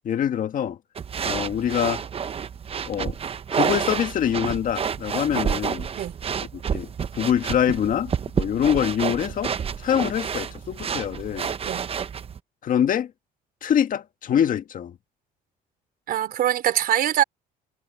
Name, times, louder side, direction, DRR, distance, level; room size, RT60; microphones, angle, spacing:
voice 1, 0.0-0.8 1.2-2.0 2.9-3.2 3.5-5.9 6.5-9.5 9.8-11.5 12.6-13.1 13.6-15.0, left 9 dB, 55° left, 1.7 m, -24 dB
shuffling in tennis shoes on carpet, 1.0-12.4, right 7 dB, 35° right, 0.9 m, -29 dB
voice 2, 16.1-17.2, right 11 dB, 60° right, 4.4 m, -23 dB
cardioid pair, 110°, 17 cm